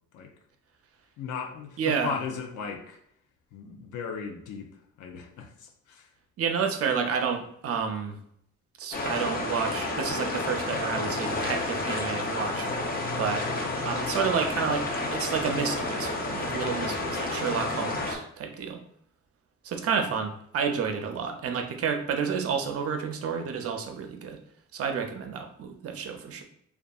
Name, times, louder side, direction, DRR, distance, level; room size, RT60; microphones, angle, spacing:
voice 1, 1.2-3.0 3.5-4.7 5.0-6.1, left 6 dB, 80° left, 4 dB, 0.5 m, -36 dB
voice 2, 1.8-2.1 6.4-8.2 8.8-12.7 13.2-13.5 13.8-18.8 19.6-24.4 24.7-26.4, right 6 dB, 50° right, 5 dB, 0.5 m, -30 dB
sound 1, 8.9-18.2, left 2 dB, 30° left, 0.5 m, -30 dB
2.7 x 2.3 x 2.3 m, 0.69 s
cardioid pair, 90°, 30 cm